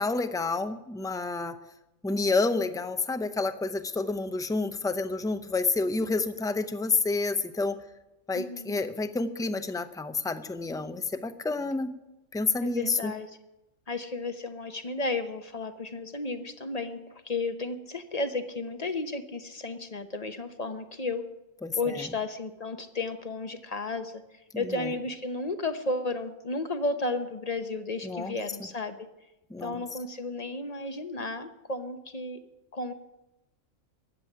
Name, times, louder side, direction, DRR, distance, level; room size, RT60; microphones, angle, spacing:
voice 1, 0.0-1.6 2.0-7.8 8.3-11.9 12.3-13.1 21.6-22.1 24.5-24.9 28.0-28.3 29.5-29.8, left 3 dB, 5° left, 10 dB, 0.4 m, -29 dB
voice 2, 8.3-8.8 12.6-13.3 13.9-21.2 21.8-24.1 24.5-29.0 29.6-32.4 32.7-32.9, left 2 dB, 35° left, 8 dB, 0.9 m, -33 dB
15.5 x 7.6 x 9.9 m, 0.95 s
omnidirectional pair, 1.4 m